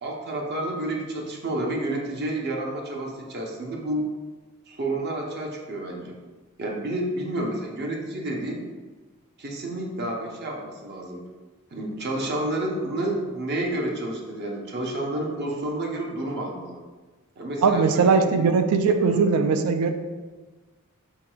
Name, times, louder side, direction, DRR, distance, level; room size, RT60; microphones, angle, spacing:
voice 1, 0.0-4.1 4.7-6.2 6.6-8.7 9.4-11.2 11.7-16.8 17.4-18.5 19.1-19.2, right 1 dB, 50° right, -1 dB, 0.6 m, -30 dB
voice 2, 17.6-19.9, right 5 dB, 90° right, 8 dB, 0.3 m, -20 dB
4.6 x 3.8 x 2.3 m, 1.3 s
head